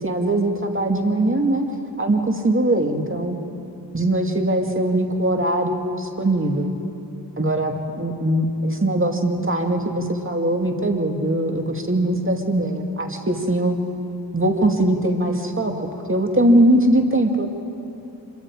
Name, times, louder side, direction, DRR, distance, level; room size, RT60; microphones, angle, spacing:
voice 1, 0.0-1.7 2.0-3.4 3.9-6.7 7.4-13.8 14.3-17.5, right 1 dB, 30° right, 3 dB, 2.4 m, -21 dB
26.0 x 23.0 x 4.9 m, 3.0 s
cardioid pair, 45°, 41 cm